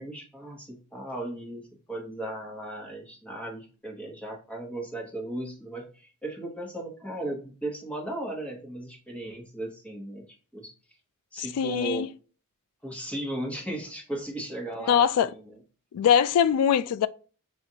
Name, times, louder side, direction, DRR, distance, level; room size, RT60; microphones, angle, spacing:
voice 1, 0.0-10.2 10.5-10.7 11.3-12.1 12.8-15.5, right 1 dB, 5° left, 1.0 m, -36 dB
voice 2, 11.4-12.1 14.9-15.3 15.9-17.1, left 8 dB, 85° left, 0.3 m, -22 dB
6.1 x 2.4 x 2.7 m
head